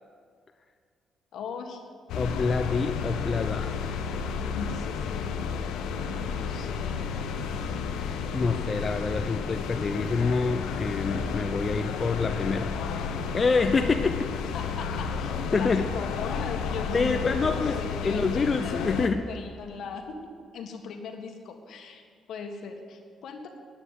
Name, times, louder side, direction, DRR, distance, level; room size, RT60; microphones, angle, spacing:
voice 1, 1.3-1.8 4.2-5.3 5.9-7.1 14.5-20.2 20.5-22.0 22.3-23.5, left 5 dB, 75° left, 4 dB, 1.6 m, -39 dB
sound 1, 2.1-19.1, left 6 dB, 90° left, 1.0 m, -32 dB
voice 2, 2.2-3.7 8.3-12.7 13.3-14.4 15.5-15.9 16.9-17.8 18.0-19.3, left 4 dB, 35° left, 6 dB, 0.6 m, -26 dB
9.5 x 8.7 x 9.8 m, 2.1 s
cardioid pair, 90°, 0 cm